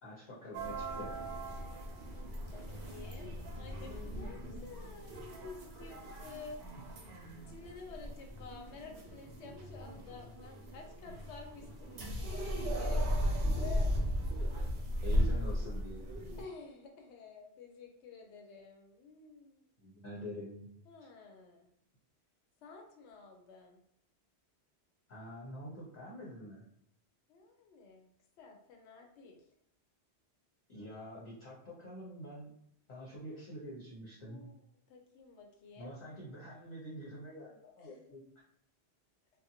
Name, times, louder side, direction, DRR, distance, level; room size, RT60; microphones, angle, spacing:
voice 1, 0.0-1.1 13.5-13.6 15.0-16.0 19.8-20.7 21.0-21.1 25.1-26.6 30.7-32.5 32.9-34.4 35.8-38.2, equal, 45° left, -7 dB, 0.9 m, -46 dB
sound 1, 0.5-16.4, equal, 65° right, 0.8 m, -37 dB
voice 2, 2.5-6.6 7.5-13.9 16.4-19.6 20.9-21.7 22.6-23.8 27.3-28.1 28.4-29.4 34.3-34.6 34.9-35.9, left 4 dB, 85° left, 3 dB, 0.9 m, -51 dB
2.6 x 2.2 x 2.7 m, 0.71 s
omnidirectional pair, 1.1 m